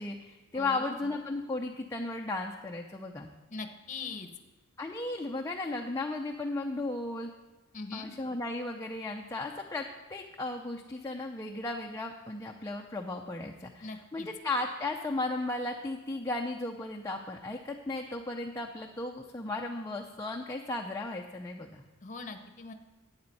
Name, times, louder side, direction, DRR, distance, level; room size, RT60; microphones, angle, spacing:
voice 1, 0.0-3.3 4.8-7.3 7.9-21.8, left 2 dB, 15° left, 1 dB, 0.5 m, -35 dB
voice 2, 0.5-0.9 3.5-4.3 7.7-8.1 13.8-14.3 22.0-22.7, left 3 dB, 35° left, 7 dB, 0.9 m, -41 dB
12.0 x 8.8 x 4.1 m, 1.2 s
head